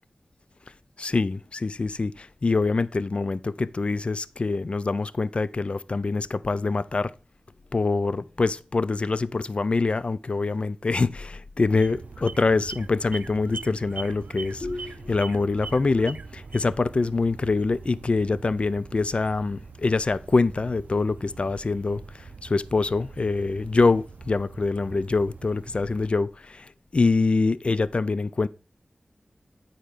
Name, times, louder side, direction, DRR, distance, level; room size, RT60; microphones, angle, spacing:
voice 1, 1.0-7.1 7.7-28.5, left 3 dB, 50° left, 0.4 m, -25 dB
sound 1, 11.7-26.1, right 4 dB, 85° right, 0.5 m, -42 dB
9.1 x 4.4 x 4.9 m
wide cardioid pair, 75°, 3 cm